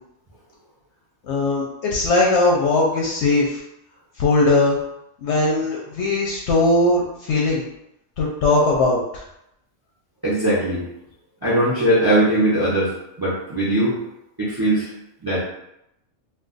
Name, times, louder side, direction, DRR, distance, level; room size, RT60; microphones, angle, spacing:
voice 1, 1.2-3.6 4.2-4.8 5.2-7.6 8.2-9.2, left 2 dB, 65° left, -2 dB, 0.8 m, -19 dB
voice 2, 10.2-10.8 11.4-12.9 13.2-14.0 14.4-14.9 15.2-15.4, right 1 dB, 25° right, -7 dB, 0.5 m, -20 dB
2.4 x 2.4 x 3.8 m, 0.82 s
omnidirectional pair, 1.4 m